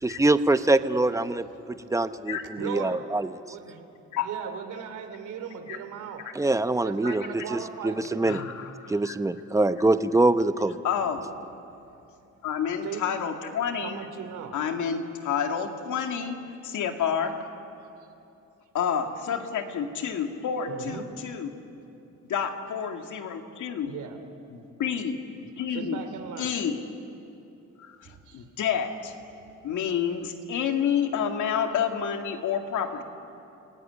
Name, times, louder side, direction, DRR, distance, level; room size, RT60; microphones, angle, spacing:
voice 1, 0.0-3.3 6.3-8.4 8.9-10.8, right 2 dB, 10° right, 11 dB, 0.9 m, -24 dB
voice 2, 2.6-3.0 3.5-3.9 4.2-6.2 6.8-8.2 12.8-13.0 13.8-14.5 20.7-21.1 23.8-24.2 25.7-26.5 28.3-28.4, right 8 dB, 80° right, 7 dB, 3.0 m, -37 dB
voice 3, 8.2-9.2 10.8-11.3 12.4-14.0 14.5-17.4 18.7-21.5 22.3-23.9 24.5-26.0 26.4-26.8 27.8-29.1 29.6-33.0, left 7 dB, 75° left, 4 dB, 2.3 m, -29 dB
29.5 x 18.0 x 10.0 m, 2.8 s
cardioid pair, 90°, 30 cm